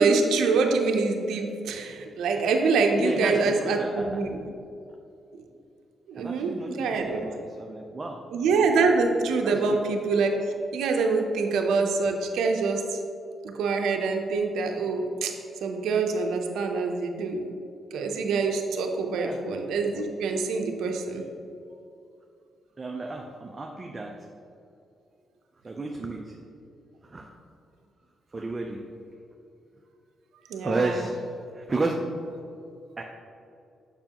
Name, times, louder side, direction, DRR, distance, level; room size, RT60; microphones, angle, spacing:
voice 1, 0.0-4.4 6.1-7.2 8.3-10.3 10.7-13.0 13.4-15.3 15.6-17.4 17.9-21.2 30.5-30.9, right 4 dB, 85° right, 3 dB, 0.6 m, -25 dB
voice 2, 3.0-4.2 6.2-8.2 9.4-9.8 19.1-19.4 22.8-24.3 25.6-26.4 27.0-27.3 28.3-28.8 30.6-31.1 31.5-32.0 33.0-33.1, right 2 dB, 30° right, 1 dB, 0.5 m, -32 dB
6.8 x 5.7 x 2.9 m, 2.5 s
cardioid pair, 80°, 0 cm